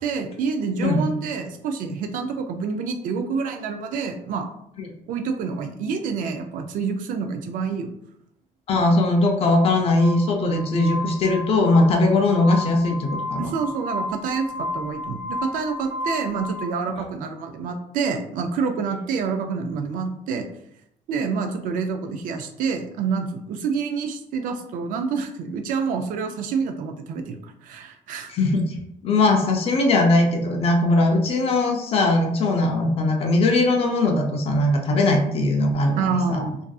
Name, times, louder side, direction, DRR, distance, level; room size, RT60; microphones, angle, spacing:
voice 1, 0.0-4.5 5.1-7.9 13.4-20.5 21.1-28.3 35.9-36.6, right 5 dB, 65° right, 6 dB, 0.4 m, -27 dB
voice 2, 8.7-13.5 17.0-17.1 28.3-28.8 29.0-36.5, left 2 dB, 40° left, 3 dB, 0.4 m, -20 dB
Glass, 9.9-16.7, left 1 dB, 85° right, 0.7 m, -32 dB
2.5 x 2.4 x 2.3 m, 0.75 s
cardioid pair, 145°, 15 cm